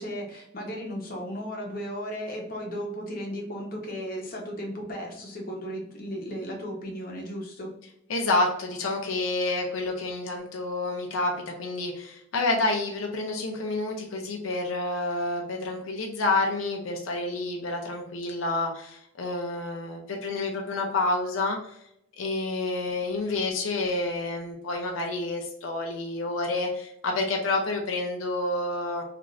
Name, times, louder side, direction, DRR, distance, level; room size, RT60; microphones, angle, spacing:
voice 1, 0.0-7.7, equal, 45° left, -1 dB, 0.8 m, -35 dB
voice 2, 8.1-21.8 22.2-29.0, left 2 dB, 90° left, 1 dB, 0.5 m, -29 dB
2.5 x 2.4 x 3.1 m, 0.76 s
head